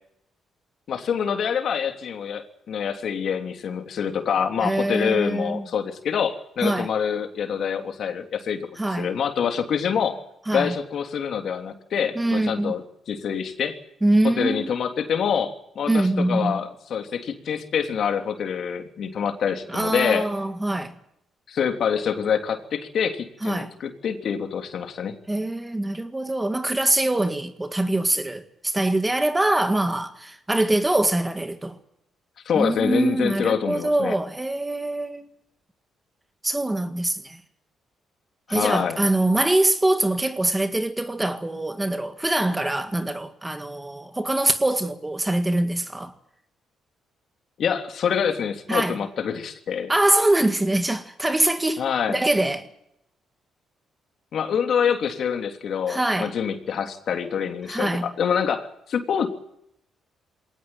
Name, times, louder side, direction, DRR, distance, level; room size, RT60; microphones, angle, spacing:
voice 1, 0.9-8.6 9.0-10.2 10.5-12.8 13.1-13.7 14.2-20.3 21.5-25.1 32.4-34.1 38.5-39.0 47.6-49.9 51.8-52.2 54.3-59.3, left 7 dB, 60° left, 3.2 m, -26 dB
voice 2, 4.6-5.7 6.6-6.9 8.8-9.1 10.5-10.7 12.2-12.7 14.0-14.7 15.9-16.6 19.7-20.9 23.4-23.7 25.3-31.8 32.5-35.3 36.4-37.4 38.5-46.1 48.7-49.0 49.9-51.8 52.1-52.7 55.9-56.3 57.7-58.1, right 1 dB, 15° right, 1.9 m, -23 dB
21.5 x 18.5 x 9.2 m
cardioid pair, 90°, 0 cm